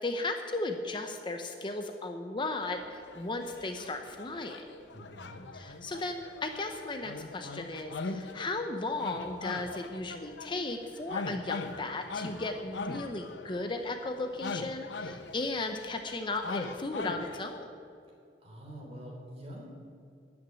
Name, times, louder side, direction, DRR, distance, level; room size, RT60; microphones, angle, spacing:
voice 1, 0.0-4.6 5.5-17.7, left 2 dB, 30° left, 5 dB, 0.7 m, -35 dB
sound 1, 2.6-8.6 9.0-17.4, left 3 dB, 85° left, 0.7 m, -41 dB
voice 2, 4.9-5.4 18.4-19.7, equal, 35° right, -1 dB, 3.3 m, -45 dB
12.5 x 6.1 x 9.0 m, 2.6 s
head